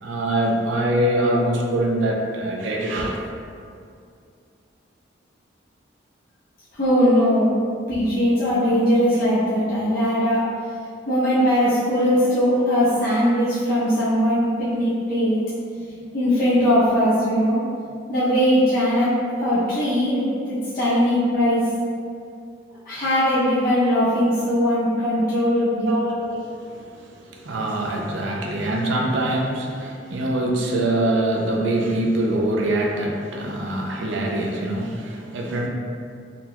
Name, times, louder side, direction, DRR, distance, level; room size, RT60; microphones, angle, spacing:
voice 1, 0.0-3.3 25.9-35.7, right 1 dB, 75° right, 0 dB, 0.5 m, -24 dB
voice 2, 6.7-7.5 7.9-10.4 11.1-15.4 16.1-17.6 18.1-21.7 22.9-25.9, equal, 45° left, -12 dB, 0.7 m, -20 dB
3.9 x 2.8 x 2.2 m, 2.3 s
head